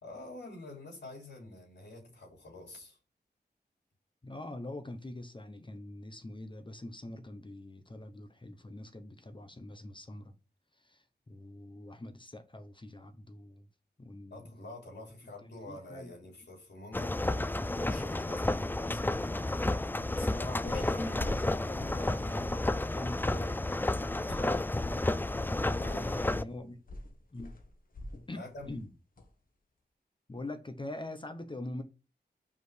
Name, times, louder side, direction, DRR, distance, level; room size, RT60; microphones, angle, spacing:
voice 1, 0.0-3.0 14.3-21.4 24.3-24.7 25.7-26.8 28.4-28.7, left 1 dB, 80° left, 3.1 m, -48 dB
voice 2, 4.2-10.3 10.7-13.7 14.0-14.5 15.7-16.1 20.3-21.3 21.7-23.8 25.7-26.8 27.3-27.5 28.3-28.4 28.7-28.9 30.3-31.8, left 1 dB, 30° left, 0.9 m, -44 dB
sound 1, 16.9-26.4, left 2 dB, 10° left, 0.3 m, -31 dB
sound 2, 20.7-22.1 22.4-22.7 23.0-23.2 24.3-28.3 28.6-28.8 29.2-29.3, left 1 dB, 55° left, 1.5 m, -43 dB
5.7 x 4.8 x 6.2 m
wide cardioid pair, 105°, 17 cm